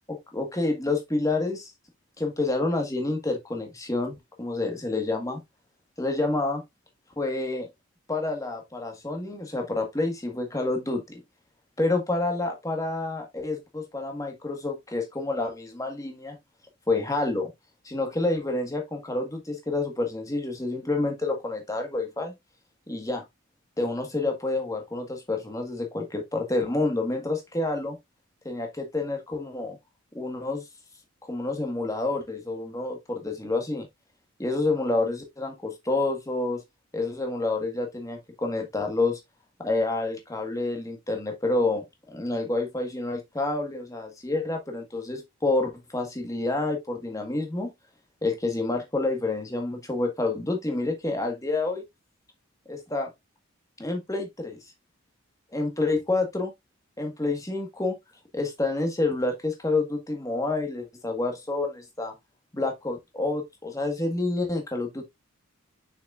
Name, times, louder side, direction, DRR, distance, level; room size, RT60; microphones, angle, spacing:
voice 1, 0.1-1.7 2.2-5.4 6.0-6.6 7.2-7.7 8.1-11.2 11.8-16.4 16.9-17.5 17.8-22.4 22.9-23.2 23.8-28.0 28.4-29.8 30.1-30.6 31.2-33.9 34.4-36.6 36.9-39.2 39.6-47.7 48.2-51.8 52.7-53.1 53.8-54.6 55.5-56.5 57.0-58.0 58.3-62.1 62.5-65.0, left 2 dB, 15° left, 1.5 m, -28 dB
6.7 x 6.2 x 2.5 m
head